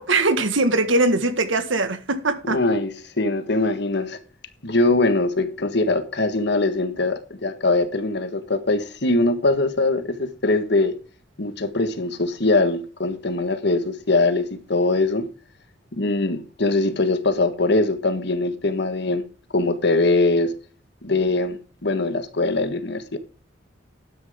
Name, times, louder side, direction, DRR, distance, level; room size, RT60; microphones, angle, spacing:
voice 1, 0.0-2.6, right 2 dB, 85° right, 1.7 m, -21 dB
voice 2, 2.4-4.2 4.6-10.9 11.4-15.3 15.9-19.2 19.5-20.5 21.0-23.2, left 2 dB, 60° left, 1.6 m, -22 dB
12.0 x 10.0 x 3.7 m
head